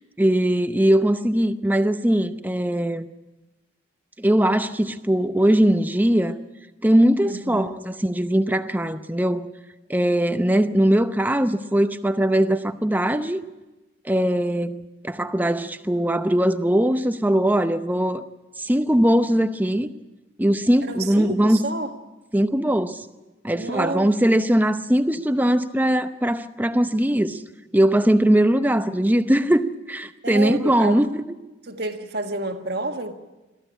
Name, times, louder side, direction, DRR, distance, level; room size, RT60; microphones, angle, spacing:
voice 1, 0.2-3.1 4.2-6.3 6.8-9.5 9.9-13.4 14.0-18.2 18.6-19.9 20.4-21.6 22.3-23.1 23.4-27.4 27.7-31.2, right 1 dB, 10° right, 0.7 m, -20 dB
voice 2, 7.2-7.7 20.8-21.9 23.5-24.4 30.2-31.1 31.6-33.1, right 2 dB, 50° right, 1.7 m, -30 dB
22.5 x 14.5 x 10.0 m
head